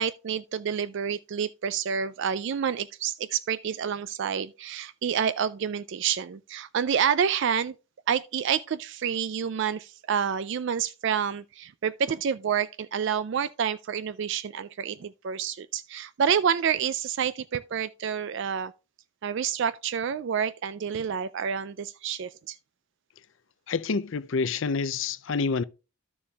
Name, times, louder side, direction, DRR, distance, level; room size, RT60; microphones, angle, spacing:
voice 1, 0.0-7.7 8.1-18.7 19.2-22.6, right 7 dB, 55° right, 0.3 m, -28 dB
voice 2, 23.7-25.6, left 4 dB, 55° left, 0.5 m, -27 dB
13.0 x 7.0 x 2.3 m
head